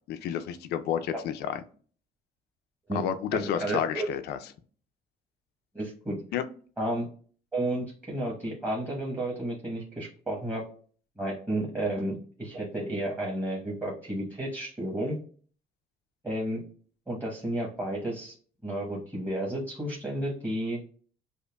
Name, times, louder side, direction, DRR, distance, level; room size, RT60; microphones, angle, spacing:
voice 1, 0.1-1.6 2.9-4.4 6.3-6.4, left 9 dB, 75° left, 10 dB, 0.5 m, -30 dB
voice 2, 3.3-4.1 5.7-6.2 6.8-7.0 7.5-10.6 11.2-15.2 16.2-16.6 17.1-18.3 18.6-20.8, right 1 dB, 10° right, -3 dB, 1.0 m, -32 dB
5.2 x 2.1 x 2.2 m, 0.43 s
cardioid pair, 110°, 17 cm